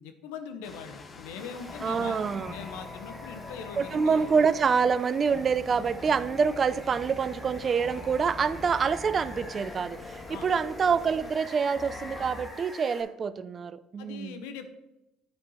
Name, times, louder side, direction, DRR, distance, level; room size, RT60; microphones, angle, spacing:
voice 1, 0.0-4.3 10.3-10.5 14.0-14.7, left 6 dB, 80° left, 8 dB, 0.8 m, -41 dB
sound 1, 0.6-12.5, left 3 dB, 35° left, 1.0 m, -43 dB
Water, 1.4-13.0, equal, ahead, 1.7 m, -47 dB
voice 2, 1.8-2.5 3.8-14.4, right 6 dB, 40° right, 15 dB, 0.4 m, -26 dB
9.6 x 4.5 x 4.2 m, 0.92 s
hypercardioid pair, 70°, 0 cm